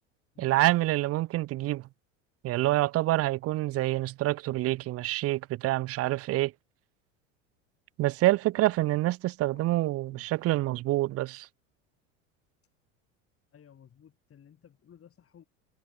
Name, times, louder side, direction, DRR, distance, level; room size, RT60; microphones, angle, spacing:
voice 1, 0.4-1.9 2.4-6.5 8.0-11.5, right 17 dB, 40° right, 0.6 m, -27 dB
voice 2, 13.5-15.4, left 8 dB, 35° left, 7.2 m, -56 dB
hypercardioid pair, 85°, 39 cm